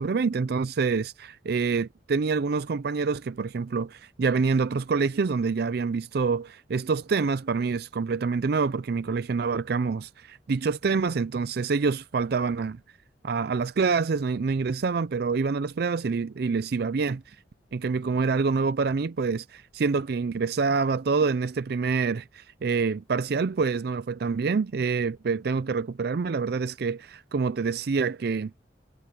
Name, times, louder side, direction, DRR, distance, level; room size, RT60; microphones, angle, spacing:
voice 1, 0.0-12.8 13.2-17.4 17.7-28.5, right 4 dB, 60° right, 0.4 m, -26 dB
head